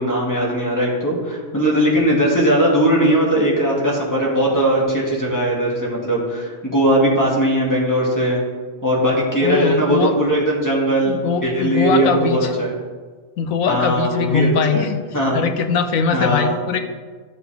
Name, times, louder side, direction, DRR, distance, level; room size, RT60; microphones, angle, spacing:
voice 1, 0.0-8.4 8.8-12.7 13.7-14.9 15.1-15.4 16.1-16.6, right 1 dB, 15° left, -5 dB, 2.3 m, -19 dB
voice 2, 9.4-10.1 11.0-12.5 13.4-15.0 15.3-16.8, left 5 dB, 85° left, 7 dB, 1.2 m, -21 dB
14.0 x 6.9 x 3.5 m, 1.4 s
omnidirectional pair, 1.4 m